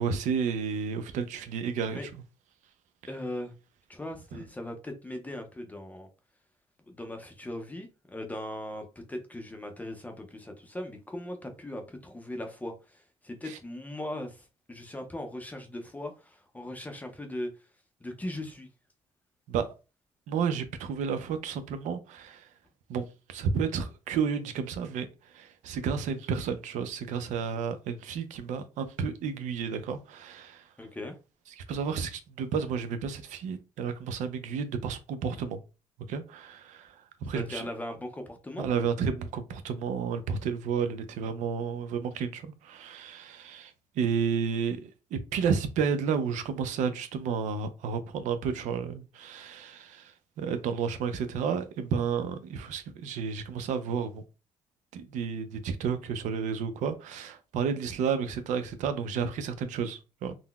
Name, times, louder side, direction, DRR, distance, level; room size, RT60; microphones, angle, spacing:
voice 1, 0.0-2.0 4.3-4.4 13.4-13.6 19.5-19.7 20.3-22.5 22.9-23.0 23.3-25.1 25.3-30.6 31.6-35.6 36.1-36.9 37.2-37.6 38.6-54.2 54.9-60.3, right 6 dB, 85° right, 0.5 m, -31 dB
voice 2, 3.1-3.5 3.9-6.1 6.9-17.7 18.0-18.7 30.8-31.2 37.3-38.7, left 1 dB, 10° left, 0.5 m, -39 dB
3.8 x 2.0 x 2.2 m
cardioid pair, 115°, 12 cm